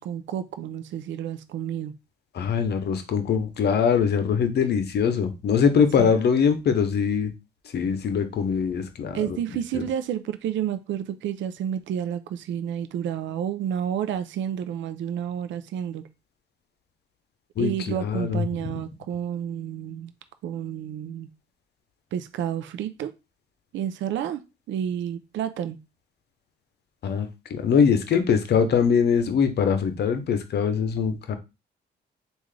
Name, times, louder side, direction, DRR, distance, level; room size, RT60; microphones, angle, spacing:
voice 1, 0.0-1.9 6.0-6.1 9.1-16.0 17.6-20.1 20.4-21.3 22.1-23.1 23.7-24.4 24.7-25.8, right 9 dB, 70° right, 10 dB, 0.5 m, -30 dB
voice 2, 2.3-7.3 7.7-9.3 9.7-9.8 17.6-18.8 27.0-31.4, left 6 dB, 55° left, 8 dB, 0.7 m, -23 dB
3.6 x 2.5 x 3.2 m, 0.26 s
cardioid pair, 90°, 20 cm